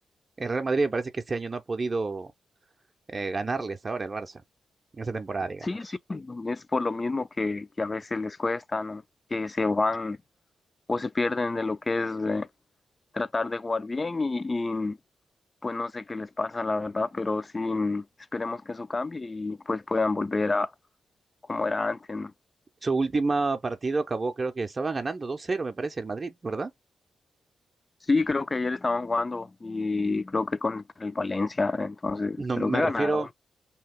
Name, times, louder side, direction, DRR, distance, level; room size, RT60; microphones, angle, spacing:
voice 1, 0.4-2.3 3.1-4.4 4.9-5.7 22.8-26.7 32.4-33.3, right 3 dB, 40° right, 0.5 m, -29 dB
voice 2, 5.6-9.0 9.3-10.2 10.9-12.5 13.1-15.0 15.6-18.1 18.3-20.7 21.5-22.3 28.1-33.3, left 3 dB, 35° left, 0.4 m, -28 dB
2.8 x 2.3 x 3.4 m
supercardioid pair, 50°, 0 cm